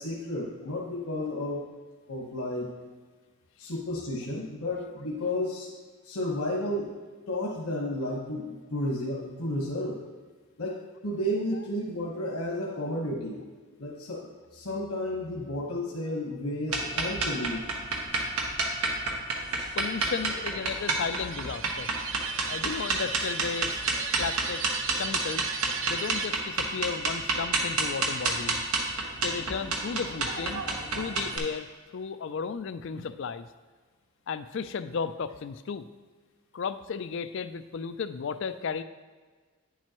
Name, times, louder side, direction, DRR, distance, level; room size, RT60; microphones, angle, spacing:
voice 1, 0.0-1.7 2.1-2.7 3.6-5.7 6.0-6.9 7.3-10.0 10.6-10.8 11.0-13.4 13.8-17.6, left 1 dB, 80° left, -2 dB, 1.3 m, -32 dB
sound 1, 16.7-31.4, right 3 dB, 80° right, 1.2 m, -29 dB
voice 2, 19.8-21.9 22.5-23.8 24.2-24.6 25.0-25.4 25.9-28.6 29.2-30.6 30.9-31.7 31.9-33.5 34.3-35.9 36.5-38.8, left 5 dB, 55° left, 12 dB, 0.4 m, -34 dB
sound 2, 20.7-26.3, right 7 dB, 60° right, 0.6 m, -37 dB
9.8 x 7.4 x 3.0 m, 1.4 s
head